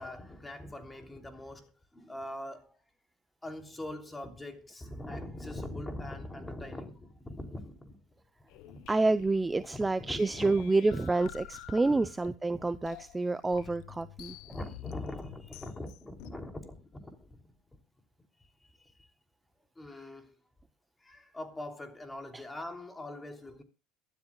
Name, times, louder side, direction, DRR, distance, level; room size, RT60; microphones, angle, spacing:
voice 1, 0.0-2.8 3.4-8.0 8.5-8.8 9.6-10.6 11.9-12.0 14.5-17.5 18.6-19.1 19.7-20.3 21.0-23.6, left 1 dB, 15° left, 3.2 m, -42 dB
sound 1, 8.5-16.3, left 14 dB, 75° left, 1.1 m, -49 dB
voice 2, 8.9-14.4 22.3-22.4, right 3 dB, 15° right, 0.6 m, -28 dB
23.5 x 12.5 x 2.4 m
supercardioid pair, 100°, 0 cm